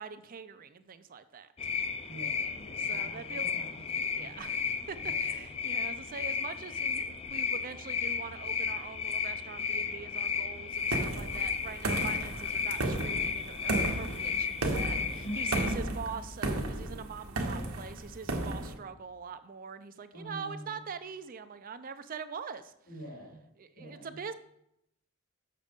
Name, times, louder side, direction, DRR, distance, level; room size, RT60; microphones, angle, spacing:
voice 1, 0.0-1.5 2.8-3.5 4.1-22.7 23.6-24.3, right 5 dB, 40° right, 11 dB, 0.5 m, -43 dB
sound 1, 1.6-15.7, left 6 dB, 30° left, 0.5 m, -34 dB
voice 2, 2.1-4.6 5.0-5.5 15.2-15.5 20.1-20.8 22.9-23.4 23.8-24.2, right 1 dB, 80° left, -2 dB, 2.8 m, -45 dB
sound 2, 10.9-18.7, right 2 dB, 85° right, 1.2 m, -34 dB
6.7 x 6.2 x 5.2 m, 0.79 s
head